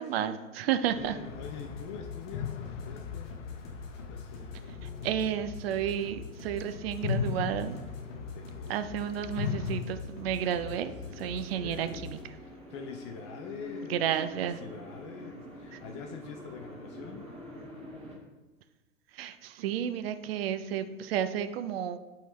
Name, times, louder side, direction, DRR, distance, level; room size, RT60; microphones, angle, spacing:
voice 1, 0.0-1.2 4.8-7.8 8.7-12.2 13.9-14.6 15.7-15.8 19.1-22.0, right 9 dB, 50° right, 10 dB, 0.5 m, -32 dB
sound 1, 0.9-6.5 6.9-9.8, left 6 dB, 65° left, 0.9 m, -38 dB
voice 2, 1.0-3.3 4.1-4.8 8.3-8.9 10.7-12.1 12.4-17.3, left 6 dB, 25° left, 4 dB, 0.3 m, -45 dB
sound 2, 1.3-12.2, left 5 dB, 45° left, 1.4 m, -44 dB
sound 3, 3.2-18.1, equal, 15° right, 1.8 m, -48 dB
11.0 x 3.9 x 3.1 m, 1.1 s
figure-of-eight pair, 100°, 40 cm